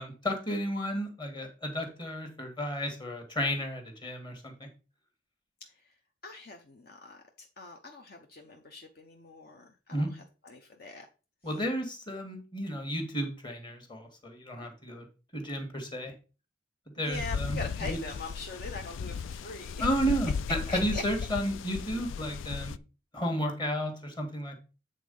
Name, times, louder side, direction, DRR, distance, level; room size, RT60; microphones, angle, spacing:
voice 1, 0.0-4.5 9.9-10.1 11.4-15.0 15.3-16.1 17.0-18.0 19.8-22.7 23.1-24.6, equal, 25° left, 4 dB, 1.6 m, -32 dB
voice 2, 6.2-11.1 17.0-19.9 20.7-21.0, left 3 dB, 50° left, 3 dB, 0.8 m, -42 dB
sound 1, 17.1-22.8, left 6 dB, 90° left, 0.4 m, -36 dB
8.3 x 3.7 x 5.3 m, 0.33 s
head